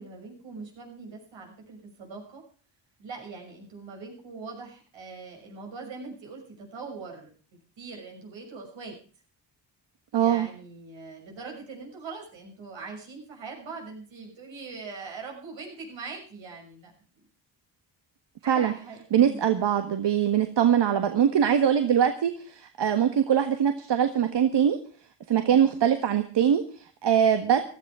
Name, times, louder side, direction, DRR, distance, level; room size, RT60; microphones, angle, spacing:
voice 1, 0.0-2.4 3.0-8.9 10.1-16.9 17.2-17.3 18.4-19.4 25.5-25.9, right 4 dB, 80° right, 0 dB, 6.5 m, -42 dB
voice 2, 10.1-10.5 18.5-18.7 19.1-24.8 25.3-27.6, right 9 dB, 65° right, 8 dB, 1.5 m, -22 dB
16.0 x 13.0 x 4.8 m, 0.40 s
cardioid pair, 65°, 45 cm